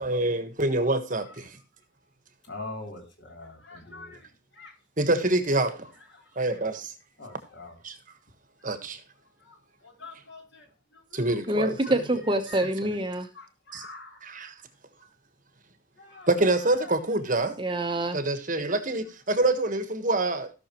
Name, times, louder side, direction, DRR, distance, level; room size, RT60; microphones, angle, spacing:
voice 1, 0.0-1.6 5.0-5.9 6.4-6.9 7.8-8.0 8.6-9.0 11.1-11.7 12.8-13.0 13.7-13.8 14.2-14.5 16.3-17.6 18.1-20.5, right 2 dB, 40° right, 1.3 m, -26 dB
voice 2, 2.5-4.3 4.5-4.7 6.1-6.3 7.2-7.8 9.4-9.6 9.8-10.7 10.9-11.4 11.8-11.9 12.5-12.7 13.3-14.2 16.0-16.3 16.7-16.9, left 2 dB, 55° left, 3.5 m, -43 dB
voice 3, 11.5-13.3 17.6-18.2, right 1 dB, 25° right, 1.0 m, -26 dB
16.0 x 6.4 x 3.1 m
head